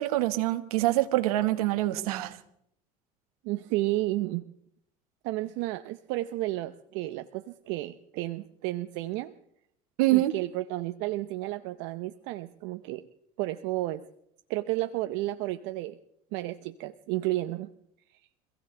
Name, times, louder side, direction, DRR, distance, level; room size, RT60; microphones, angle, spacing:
voice 1, 0.0-2.4 10.0-10.3, right 16 dB, 85° right, 9 dB, 1.6 m, -25 dB
voice 2, 3.4-4.4 5.2-9.3 10.1-13.1 13.4-14.0 14.5-16.0 16.3-17.7, right 17 dB, 70° right, 10 dB, 0.8 m, -32 dB
26.0 x 16.0 x 3.4 m, 0.73 s
supercardioid pair, 90°, 18 cm